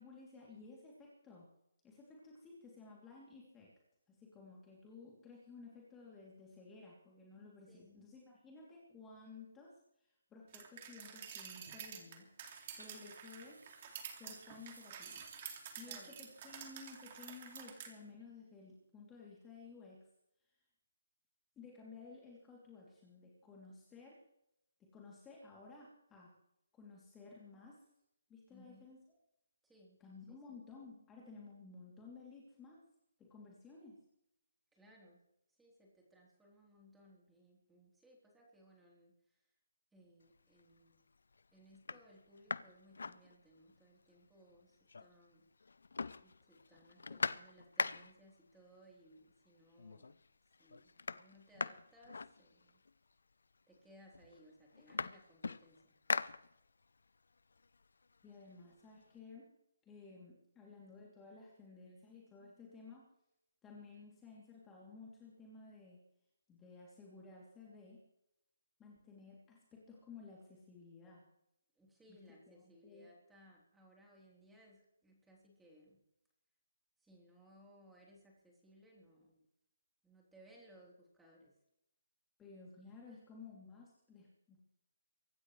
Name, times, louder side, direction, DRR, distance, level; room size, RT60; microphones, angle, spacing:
voice 1, 0.0-1.5 1.8-3.7 4.1-12.3 12.8-13.6 14.2-15.4 15.8-20.0 21.6-24.2 24.8-26.3 26.7-27.8 28.3-29.0 30.0-32.8 33.2-34.0 58.2-59.5 59.8-63.0 63.6-66.0 66.5-68.0 68.8-71.2 72.1-72.2 72.5-73.1 82.4-84.6, left 4 dB, 10° left, -4 dB, 3.0 m, -55 dB
voice 2, 7.7-8.0 15.8-16.2 28.5-28.9 29.6-30.0 30.3-30.6 34.7-35.2 35.5-39.5 39.9-41.1 41.5-45.5 46.2-50.2 50.6-52.8 53.7-56.0 71.8-76.0 77.0-79.5 80.0-81.5, equal, 5° right, -3 dB, 3.6 m, -63 dB
sound 1, 10.5-17.9, right 8 dB, 35° right, 2.5 m, -50 dB
sound 2, 12.4-17.7, right 4 dB, 80° right, 1.7 m, -60 dB
sound 3, 40.4-40.8 41.3-41.4 41.7-43.8 44.2-44.3 44.5-45.3 45.6-48.3 49.3-49.4 49.8-50.3 50.5-52.9 53.7-53.8 54.1-57.0 57.4-59.1, left 4 dB, 75° left, 0.6 m, -42 dB
24.5 x 13.5 x 3.3 m, 0.80 s
hypercardioid pair, 160°, 0 cm